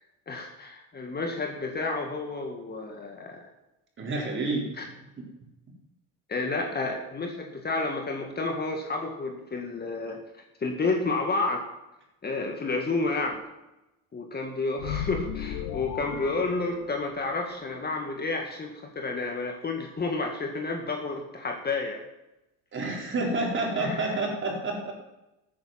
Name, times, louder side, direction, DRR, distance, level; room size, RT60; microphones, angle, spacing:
voice 1, 0.3-3.4 4.8-4.9 6.3-11.6 12.2-13.4 14.1-22.0 23.7-24.3, left 3 dB, 25° left, 2 dB, 2.0 m, -30 dB
voice 2, 4.0-4.7 22.7-24.9, right 2 dB, 30° right, 0 dB, 4.4 m, -29 dB
sound 1, 14.8-17.4, left 9 dB, 75° left, 1.6 m, -35 dB
13.5 x 9.3 x 6.0 m, 0.94 s
cardioid pair, 115°, 38 cm